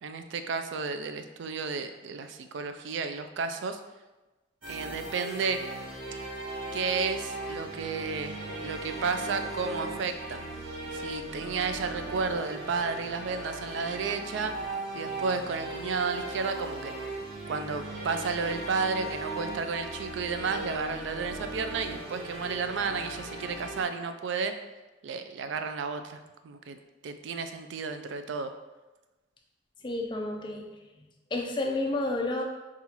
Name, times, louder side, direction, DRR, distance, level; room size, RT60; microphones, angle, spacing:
voice 1, 0.0-3.8 4.7-5.6 6.7-10.4 10.9-14.5 14.9-16.9 17.5-24.5 25.0-26.8 27.0-28.5, right 5 dB, 65° right, 8 dB, 0.3 m, -32 dB
sound 1, 4.6-23.8, right 2 dB, 90° right, 1.3 m, -38 dB
voice 2, 29.8-30.6 31.3-32.4, left 2 dB, 25° left, 2 dB, 0.4 m, -30 dB
5.4 x 2.4 x 2.9 m, 1.1 s
head